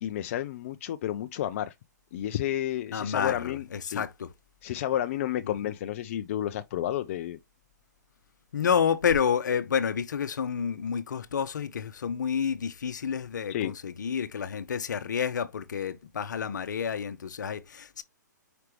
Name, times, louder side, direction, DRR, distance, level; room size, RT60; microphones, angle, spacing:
voice 1, 0.0-1.7 2.1-4.0 4.6-7.4 13.5-13.7, left 12 dB, 45° left, 0.3 m, -31 dB
voice 2, 2.9-4.3 8.5-18.0, left 7 dB, 70° left, 0.7 m, -29 dB
5.0 x 3.3 x 3.1 m
hypercardioid pair, 135°, 10 cm